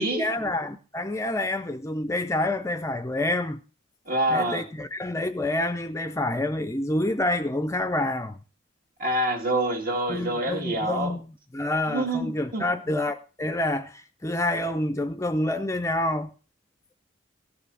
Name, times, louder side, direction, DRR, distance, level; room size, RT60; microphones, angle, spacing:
voice 1, 0.0-3.6 4.3-8.4 10.1-11.2 11.5-16.3, left 1 dB, 15° left, 0.5 m, -28 dB
voice 2, 4.1-4.6 9.0-11.1 11.9-12.7, right 1 dB, 50° right, 2.1 m, -26 dB
16.0 x 5.8 x 6.2 m
head